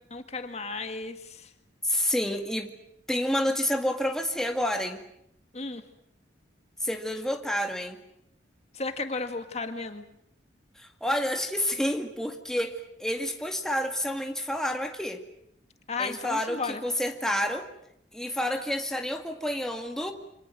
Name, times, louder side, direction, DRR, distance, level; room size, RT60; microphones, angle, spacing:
voice 1, 0.1-1.5 5.5-5.8 8.7-10.1 15.9-16.8, left 3 dB, 35° left, 7 dB, 1.9 m, -34 dB
voice 2, 1.8-2.7 3.1-5.0 6.8-8.0 10.8-15.2 16.0-17.7 18.1-20.1, left 1 dB, 5° left, 3 dB, 2.0 m, -29 dB
28.5 x 26.0 x 7.6 m, 0.73 s
head